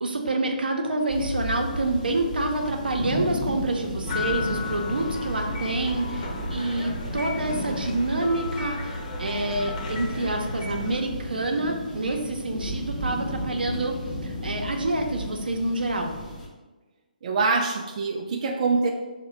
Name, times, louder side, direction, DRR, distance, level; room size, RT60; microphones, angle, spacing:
voice 1, 0.0-16.1, right 2 dB, 85° right, 3 dB, 0.6 m, -27 dB
sound 1, 1.1-16.5, equal, 5° left, 0.7 m, -34 dB
sound 2, 4.1-11.0, left 2 dB, 50° left, 0.8 m, -34 dB
voice 2, 17.2-18.9, right 4 dB, 45° right, 2 dB, 0.3 m, -24 dB
3.6 x 2.1 x 4.3 m, 1.2 s
hypercardioid pair, 150°, 5 cm